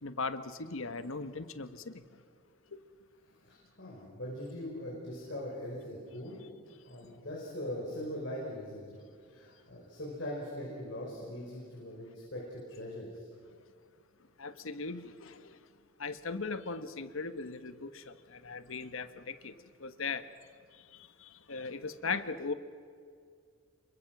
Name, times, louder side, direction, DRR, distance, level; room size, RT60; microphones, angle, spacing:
voice 1, 0.0-2.0 2.7-2.8 14.4-15.6 16.0-19.5 19.8-20.3 20.9-22.5, left 4 dB, 70° left, 11 dB, 1.2 m, -38 dB
voice 2, 3.4-6.4 6.8-9.0 9.3-13.3, left 1 dB, 55° left, -3 dB, 5.3 m, -41 dB
27.5 x 23.5 x 6.1 m, 2.2 s
head